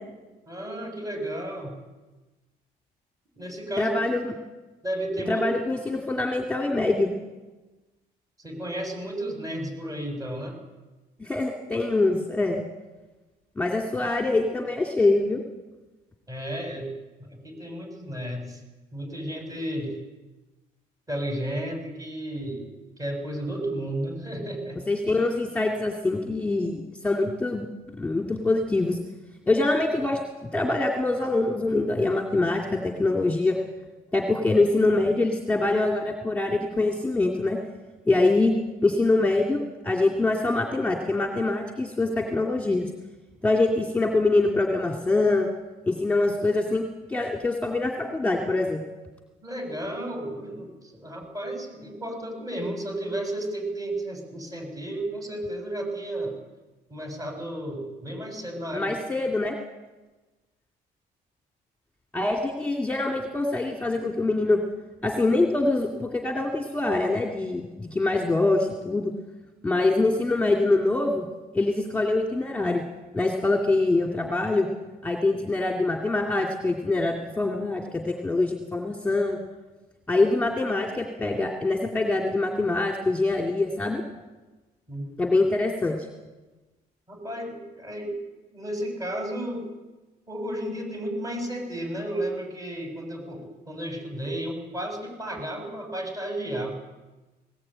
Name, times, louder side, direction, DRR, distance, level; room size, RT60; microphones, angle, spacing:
voice 1, 0.5-1.8 3.4-3.9 4.8-5.4 8.4-10.6 16.3-16.9 17.2-18.6 18.9-20.0 21.1-22.7 23.0-24.8 49.4-56.4 56.9-58.9 84.9-85.1 87.1-88.1 88.5-89.7 90.3-96.7, right 1 dB, 20° right, 3 dB, 7.2 m, -33 dB
voice 2, 3.8-4.3 5.3-7.1 11.2-12.6 13.6-15.4 24.9-27.7 28.0-29.0 29.5-33.6 34.1-37.6 38.1-38.5 38.8-42.9 43.4-45.5 45.9-48.8 58.7-59.6 62.1-64.6 65.0-69.1 69.6-71.3 71.5-72.8 73.1-74.7 75.0-79.4 80.1-84.0 85.2-86.0, left 2 dB, 10° left, 1 dB, 2.5 m, -24 dB
20.0 x 19.0 x 8.9 m, 1.2 s
cardioid pair, 110°, 17 cm